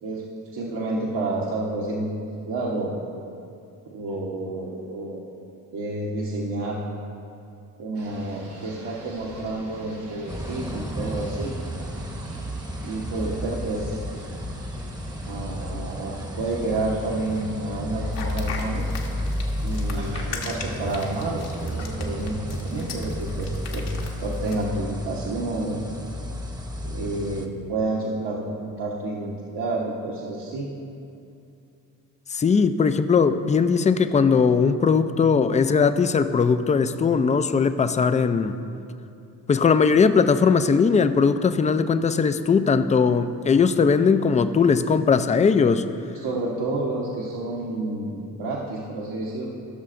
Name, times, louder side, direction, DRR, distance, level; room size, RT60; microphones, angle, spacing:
voice 1, 0.5-2.1 2.5-2.9 3.9-5.2 5.7-6.8 7.8-11.5 12.8-14.0 15.3-18.9 19.6-23.9 24.2-25.8 26.8-30.7 46.2-49.5, right 2 dB, 60° right, -4 dB, 1.3 m, -29 dB
sound 1, 7.9-22.8, right 1 dB, 80° right, 2.0 m, -45 dB
sound 2, 10.3-27.5, equal, 10° right, 0.9 m, -32 dB
sound 3, 18.1-24.6, left 5 dB, 65° left, 1.3 m, -38 dB
voice 2, 32.3-38.6 39.5-45.9, left 5 dB, 15° left, 11 dB, 0.4 m, -19 dB
16.0 x 6.4 x 2.6 m, 2.6 s
hypercardioid pair, 45°, 45 cm